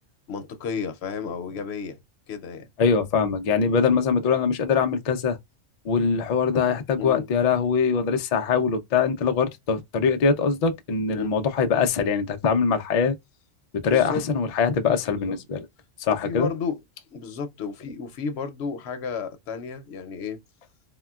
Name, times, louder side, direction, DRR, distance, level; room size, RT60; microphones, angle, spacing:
voice 1, 0.3-2.0 2.3-2.7 7.0-7.3 11.2-11.3 13.8-14.3 15.1-15.4 16.1-16.8 17.1-20.4, left 5 dB, 65° left, 0.8 m, -32 dB
voice 2, 2.8-5.4 5.8-13.2 13.8-15.6 16.0-16.5, left 5 dB, 90° left, 0.3 m, -22 dB
3.6 x 2.1 x 2.3 m
omnidirectional pair, 1.3 m